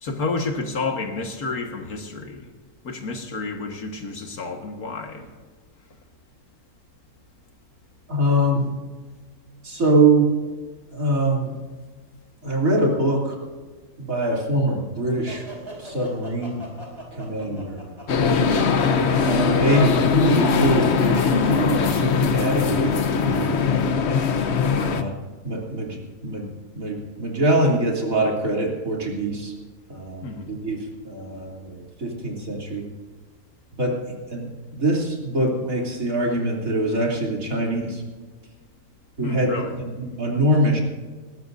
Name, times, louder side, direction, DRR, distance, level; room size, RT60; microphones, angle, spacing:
voice 1, 0.0-2.5 2.8-5.3 24.7-25.0 30.2-30.5 39.2-39.8, left 3 dB, 85° left, 4 dB, 2.1 m, -30 dB
voice 2, 8.1-8.7 9.6-10.3 10.9-11.5 12.4-13.4 14.0-15.5 15.8-16.6 17.1-17.8 19.2-23.6 24.9-25.1 25.4-29.5 29.9-32.9 33.8-34.0 34.3-38.0 39.2-40.8, right 1 dB, 65° right, -2 dB, 3.6 m, -23 dB
sound 1, 15.3-22.1, right 1 dB, 20° right, 4.4 m, -38 dB
sound 2, 18.1-25.0, left 5 dB, 50° left, 1.1 m, -21 dB
20.0 x 18.0 x 2.7 m, 1.4 s
omnidirectional pair, 1.5 m